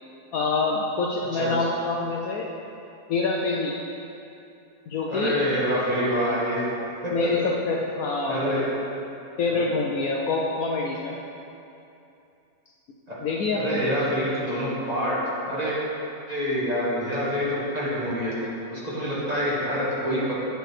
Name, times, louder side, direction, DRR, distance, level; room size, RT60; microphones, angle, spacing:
voice 1, 0.3-2.5 3.1-3.8 4.9-5.3 7.1-8.5 9.4-11.2 13.2-13.8, left 3 dB, 70° left, -1 dB, 0.9 m, -26 dB
voice 2, 5.1-6.6 7.0-7.1 8.3-8.7 9.5-9.7 13.5-15.2 15.4-15.8 16.3-18.3 18.7-20.3, equal, 25° right, -9 dB, 1.5 m, -26 dB
7.9 x 6.6 x 3.3 m, 2.8 s
omnidirectional pair, 1.8 m